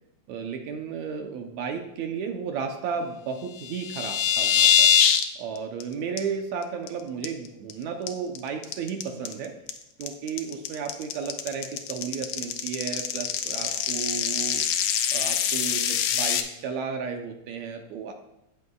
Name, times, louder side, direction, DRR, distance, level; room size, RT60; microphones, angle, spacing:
voice 1, 0.3-4.9 5.4-9.5 10.0-14.6 15.1-18.1, right 6 dB, 75° right, 4 dB, 2.1 m, -33 dB
sound 1, 3.6-5.2 5.6-5.8 6.2-6.3 6.6-6.9 7.2-7.7 8.1-16.4, left 8 dB, 85° left, 2.0 m, -24 dB
17.5 x 6.8 x 2.4 m, 0.90 s
omnidirectional pair, 3.3 m